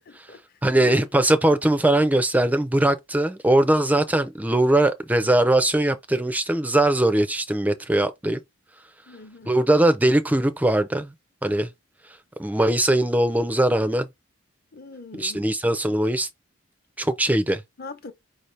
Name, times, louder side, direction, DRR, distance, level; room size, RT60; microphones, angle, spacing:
voice 1, 0.1-1.1 9.1-9.6 14.7-15.4 17.8-18.1, left 4 dB, 50° left, 0.9 m, -41 dB
voice 2, 0.6-8.4 9.5-11.1 11.4-11.7 12.4-14.1 15.2-16.3 17.0-17.6, right 1 dB, 10° right, 0.4 m, -20 dB
5.2 x 2.7 x 3.2 m
head